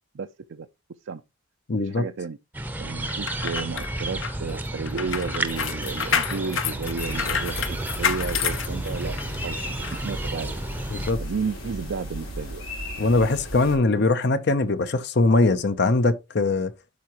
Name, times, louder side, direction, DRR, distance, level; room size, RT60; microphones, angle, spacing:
voice 1, 0.1-0.7 1.1-1.2 1.8-2.4 2.8-9.2 9.4-9.6 9.9-10.5 11.2-12.6, right 5 dB, 65° right, 0.5 m, -32 dB
voice 2, 1.7-2.0 10.9-11.2 13.0-16.7, left 3 dB, 55° left, 0.7 m, -21 dB
sound 1, 2.5-11.1, right 1 dB, 10° right, 0.7 m, -32 dB
sound 2, 3.1-9.4 9.8-10.0, left 7 dB, 70° left, 1.0 m, -29 dB
sound 3, 7.0-13.7, equal, 85° left, 4.6 m, -35 dB
12.5 x 4.7 x 2.9 m
head